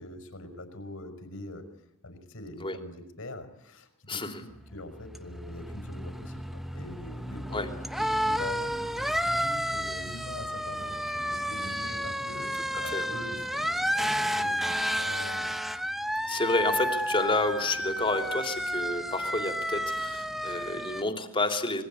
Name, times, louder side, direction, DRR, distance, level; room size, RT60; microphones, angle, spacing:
voice 1, 0.0-1.6 2.0-12.5 12.8-15.6, left 1 dB, 65° left, 8 dB, 5.5 m, -43 dB
voice 2, 4.1-4.4 7.5-7.7 12.8-13.1 16.3-21.8, left 2 dB, 25° left, 6 dB, 3.3 m, -29 dB
sound 1, 4.6-21.0, equal, ahead, 1.1 m, -31 dB
26.0 x 22.5 x 9.9 m, 0.82 s
head